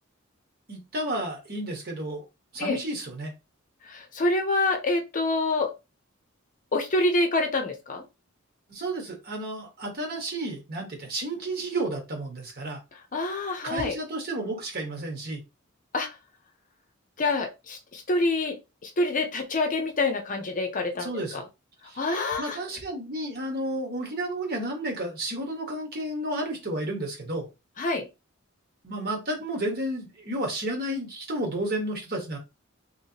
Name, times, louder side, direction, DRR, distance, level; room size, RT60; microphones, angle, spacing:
voice 1, 0.7-2.2 2.5-3.3 8.7-12.8 13.6-15.4 21.0-21.4 21.9-27.5 28.8-32.4, right 1 dB, 50° right, 1.4 m, -32 dB
voice 2, 3.9-5.7 6.7-8.0 13.1-14.0 15.9-16.1 17.2-18.6 18.8-21.4 22.0-22.6 27.8-28.0, left 2 dB, 40° left, 0.7 m, -26 dB
3.2 x 3.1 x 2.9 m
head